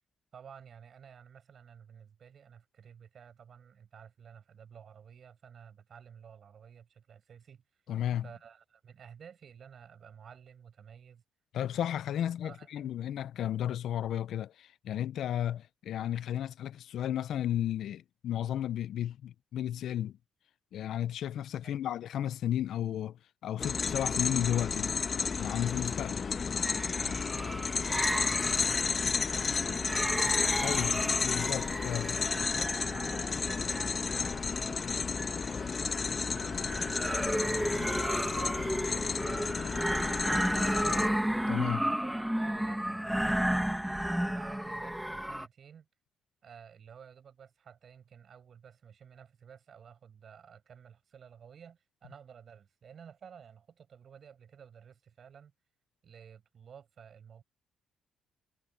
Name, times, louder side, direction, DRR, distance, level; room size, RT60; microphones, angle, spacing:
voice 1, 0.3-7.8 8.2-11.2 12.4-12.9 21.6-21.8 27.0-31.0 32.6-33.7 34.1-41.1 41.7-45.9 46.4-55.5 56.0-57.4, right 7 dB, 55° right, 7.4 m, -53 dB
voice 2, 7.9-8.3 11.5-20.2 20.7-25.0 25.4-26.3 30.5-32.2 41.5-41.8, left 11 dB, 70° left, 0.6 m, -33 dB
sound 1, 23.6-41.1, left 5 dB, 40° left, 1.4 m, -32 dB
sound 2, 26.6-45.5, equal, 5° right, 2.1 m, -33 dB
cardioid pair, 90°, 0 cm